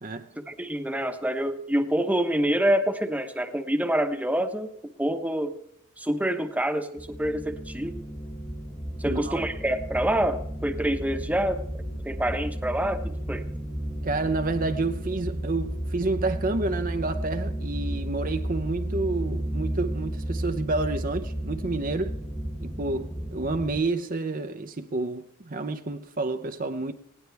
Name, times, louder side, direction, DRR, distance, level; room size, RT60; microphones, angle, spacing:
voice 1, 0.5-4.7 5.0-5.6 6.0-8.0 9.0-13.4, right 1 dB, 5° right, 1.1 m, -27 dB
sound 1, 7.0-23.8, right 1 dB, 10° left, 1.4 m, -33 dB
voice 2, 9.0-9.4 14.0-22.2 22.6-26.9, right 3 dB, 40° right, 0.8 m, -29 dB
19.5 x 17.5 x 3.5 m
head